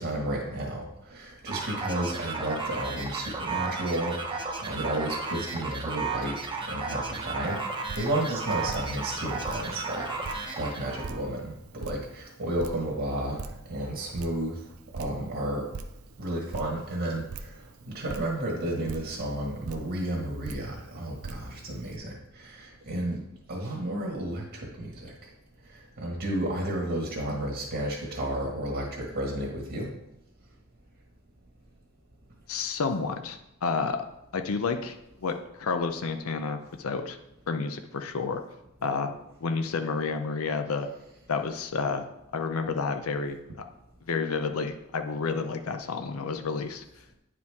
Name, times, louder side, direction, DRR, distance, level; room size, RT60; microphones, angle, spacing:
voice 1, 0.0-6.4 6.7-7.6 8.0-14.6 14.9-15.7 16.2-17.6 17.9-23.2 23.5-25.1 25.7-29.9, right 1 dB, 55° right, -2 dB, 1.6 m, -32 dB
sound 1, 1.5-11.2, right 4 dB, 25° right, 0.9 m, -34 dB
Drip, 7.5-22.0, right 4 dB, 90° right, 0.6 m, -44 dB
voice 2, 32.5-34.0 34.3-37.2 37.5-38.4 38.8-39.1 39.4-40.9 41.3-42.0 42.3-43.6 44.1-46.8, left 4 dB, 80° left, 7 dB, 0.6 m, -30 dB
9.5 x 5.0 x 3.5 m, 0.89 s
head